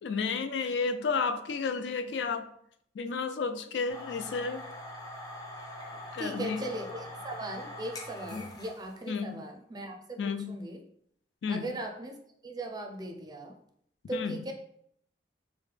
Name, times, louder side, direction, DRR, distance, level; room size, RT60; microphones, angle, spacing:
voice 1, 0.0-2.5 3.0-4.6 6.1-6.6 8.3-8.4 9.1-9.4 10.2-10.6 11.4-11.7 14.1-14.4, left 5 dB, 80° left, 9 dB, 0.4 m, -32 dB
sound 1, 3.9-9.1, left 1 dB, 20° left, 0.5 m, -43 dB
voice 2, 6.2-10.8 11.5-12.2 12.4-13.6 14.1-14.5, right 1 dB, 25° right, 3 dB, 0.4 m, -38 dB
4.6 x 2.1 x 3.3 m, 0.70 s
head